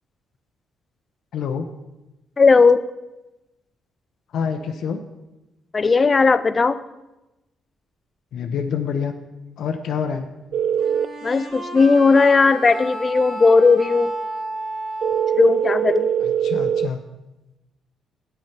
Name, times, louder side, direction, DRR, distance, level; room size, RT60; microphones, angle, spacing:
voice 1, 1.3-1.7 4.3-5.0 8.3-9.1 9.6-10.3 16.2-17.0, left 7 dB, 70° left, 6 dB, 0.6 m, -26 dB
voice 2, 2.4-2.8 5.7-6.8 11.2-14.1 15.4-16.1, left 4 dB, 30° left, 13 dB, 0.4 m, -16 dB
sound 1, 10.5-11.1 15.0-16.9, right 9 dB, 70° right, 0.3 m, -21 dB
sound 2, 10.8-16.3, right 2 dB, 40° right, 2.3 m, -33 dB
8.3 x 6.4 x 5.8 m, 1.0 s
cardioid pair, 90°, 0 cm